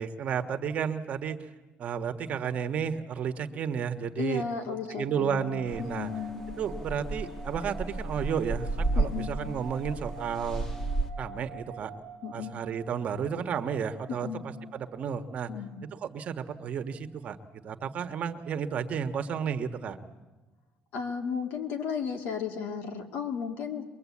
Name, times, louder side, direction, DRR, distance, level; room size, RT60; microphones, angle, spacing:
voice 1, 0.0-1.5 1.8-4.4 5.0-6.1 6.6-10.6 11.2-11.9 12.3-15.5 16.0-17.4 17.6-20.0, right 7 dB, 45° right, 8 dB, 1.3 m, -32 dB
voice 2, 4.2-5.5 5.8-6.4 8.9-9.3 12.2-12.5 14.1-14.4 15.5-15.7 20.9-23.9, left 6 dB, 70° left, 4 dB, 2.6 m, -34 dB
sound 1, 4.7-16.0, right 3 dB, 90° left, 7.6 m, -48 dB
sound 2, 5.7-11.1, right 2 dB, 15° left, 1.8 m, -33 dB
23.0 x 23.0 x 8.5 m, 1.2 s
cardioid pair, 155°, 3 cm